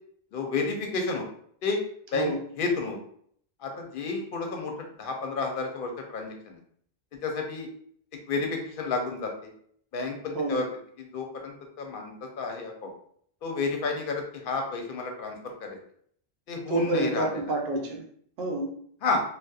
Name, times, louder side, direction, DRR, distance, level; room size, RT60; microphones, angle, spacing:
voice 1, 0.3-1.2 1.6-1.8 2.1-2.3 2.6-3.0 3.6-4.7 5.0-6.6 7.2-7.7 8.3-9.5 9.9-10.7 11.0-12.9 13.4-15.8 16.5-17.3 19.0-19.2, left 4 dB, 65° left, 3 dB, 0.7 m, -31 dB
voice 2, 16.7-18.0 18.4-18.7, right 2 dB, 75° right, 2 dB, 0.8 m, -28 dB
2.7 x 2.0 x 2.3 m, 0.62 s
omnidirectional pair, 1.0 m